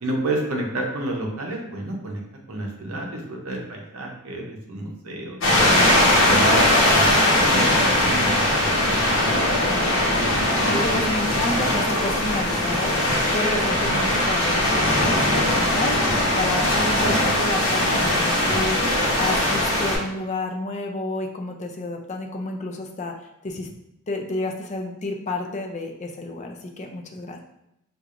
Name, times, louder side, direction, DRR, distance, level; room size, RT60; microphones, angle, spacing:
voice 1, 0.0-2.2 2.5-5.4 6.1-6.6 6.9-8.4 8.7-8.9, right 1 dB, 70° right, 0 dB, 0.7 m, -30 dB
sound 1, 5.4-20.0, left 1 dB, 60° left, 0.9 m, -20 dB
voice 2, 5.7-6.1 9.7-10.0 10.7-23.7 24.1-27.4, left 2 dB, 30° left, 3 dB, 0.4 m, -30 dB
4.5 x 2.3 x 2.4 m, 0.83 s
head